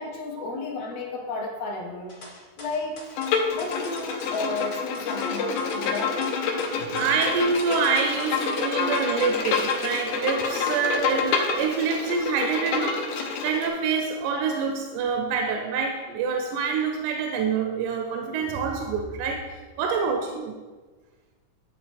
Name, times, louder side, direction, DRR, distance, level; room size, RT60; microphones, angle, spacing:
voice 1, 0.0-2.2 2.6-3.0 3.5-6.3, left 3 dB, 65° left, 0 dB, 1.9 m, -32 dB
sound 1, 2.1-10.0, left 1 dB, 35° left, 1.5 m, -44 dB
Bowed string instrument, 3.2-13.7, left 5 dB, 85° left, 2.2 m, -28 dB
voice 2, 6.8-20.5, right 5 dB, 80° right, 4 dB, 2.0 m, -26 dB
10.0 x 3.8 x 3.4 m, 1.3 s
omnidirectional pair, 3.5 m